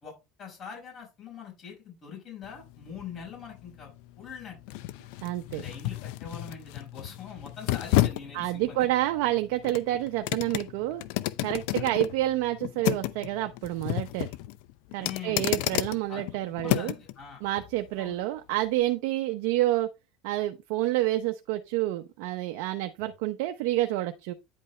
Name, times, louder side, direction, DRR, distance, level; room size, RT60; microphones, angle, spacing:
voice 1, 0.0-4.6 5.5-8.9 11.8-12.0 15.0-15.6 16.1-16.2 16.6-17.4 18.0-18.2, left 6 dB, 45° left, 5.1 m, -43 dB
sound 1, 2.4-17.1 17.6-17.7, left 17 dB, 70° left, 0.6 m, -32 dB
voice 2, 5.2-5.6 8.3-11.0 11.4-14.3 14.9-16.9 17.4-19.9 20.2-24.3, right 15 dB, 75° right, 0.8 m, -28 dB
10.0 x 5.3 x 3.3 m
supercardioid pair, 105°, 0 cm